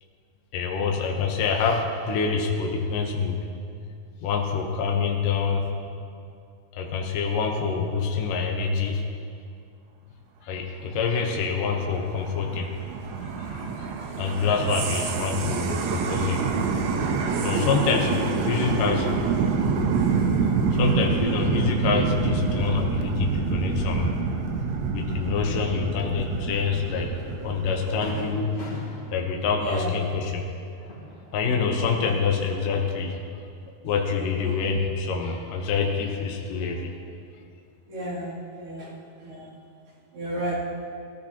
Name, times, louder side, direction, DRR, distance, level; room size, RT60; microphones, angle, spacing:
voice 1, 0.5-3.4 4.2-5.7 6.7-9.0 10.4-12.8 13.2-16.5 17.4-19.1 20.4-24.1 24.9-28.6 29.1-30.4 31.3-33.2 33.8-36.9, left 5 dB, 85° left, 1 dB, 1.8 m, -26 dB
sound 1, 11.6-28.1, right 5 dB, 75° right, 2.9 m, -27 dB
Fireworks, 27.0-27.1 27.5-27.6 28.0-31.8 32.1-33.0, equal, 30° left, 2.6 m, -41 dB
voice 2, 37.9-38.9 39.2-39.5 40.1-40.6, right 1 dB, 60° right, -9 dB, 4.7 m, -32 dB
20.0 x 13.5 x 2.9 m, 2.5 s
omnidirectional pair, 5.4 m